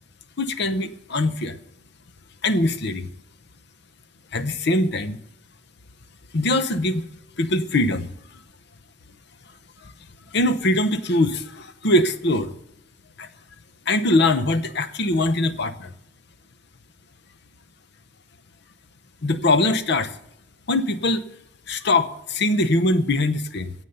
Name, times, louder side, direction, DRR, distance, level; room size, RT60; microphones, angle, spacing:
voice 1, 0.4-1.6 2.4-3.1 4.3-5.2 6.3-7.0 7.4-8.1 10.3-12.5 13.2-13.3 13.9-15.9 19.2-20.2 20.7-21.2 21.7-23.7, left 2 dB, 65° left, 12 dB, 0.9 m, -22 dB
15.0 x 8.2 x 6.8 m, 0.80 s
head